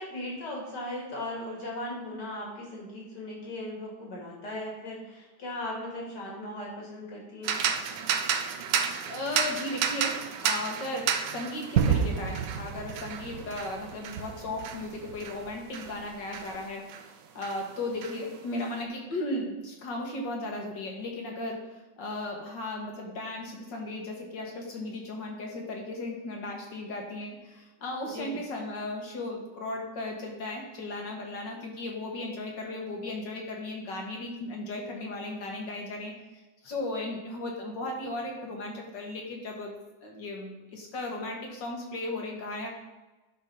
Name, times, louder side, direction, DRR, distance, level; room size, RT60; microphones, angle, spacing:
voice 1, 0.0-7.6 28.0-28.4, left 1 dB, 70° left, -3 dB, 3.1 m, -38 dB
sound 1, 7.4-17.1 17.4-18.7, right 7 dB, 85° right, 1.3 m, -33 dB
voice 2, 9.0-16.9 17.3-36.1 36.6-39.7 40.0-42.7, left 2 dB, 85° left, 0 dB, 2.3 m, -36 dB
Gunshot gunfire / Fireworks / Boom, 11.8-16.6, right 7 dB, 65° right, 1.1 m, -31 dB
11.0 x 3.9 x 5.7 m, 1.1 s
omnidirectional pair, 1.9 m